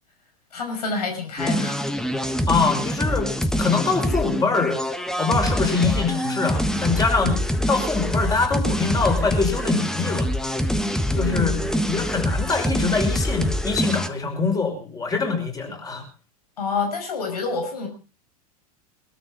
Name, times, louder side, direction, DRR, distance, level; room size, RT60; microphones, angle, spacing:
voice 1, 0.5-1.8 11.1-11.6 16.6-17.9, left 4 dB, 90° left, 4 dB, 5.9 m, -28 dB
sound 1, 1.4-14.1, equal, 5° left, 1.4 m, -25 dB
voice 2, 2.5-3.3 3.6-4.8 5.2-10.3 11.2-16.0, left 4 dB, 20° left, 3 dB, 6.1 m, -24 dB
22.0 x 13.0 x 4.0 m, 0.34 s
hypercardioid pair, 105°, 20 cm